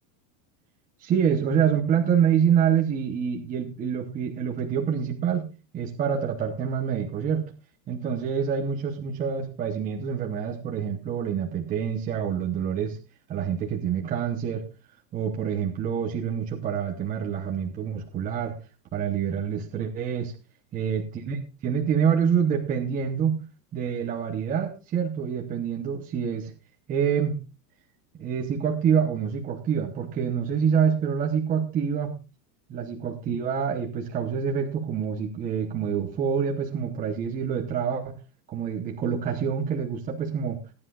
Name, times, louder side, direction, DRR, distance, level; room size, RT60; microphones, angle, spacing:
voice 1, 1.0-5.5 5.7-7.5 7.9-13.0 13.3-14.7 15.1-18.5 18.9-20.3 20.7-23.4 23.7-26.5 26.9-27.4 28.1-32.1 32.7-38.2 38.5-40.6, right 7 dB, 15° right, 2 dB, 0.9 m, -26 dB
19.5 x 10.0 x 2.4 m, 0.30 s
supercardioid pair, 175°, 49 cm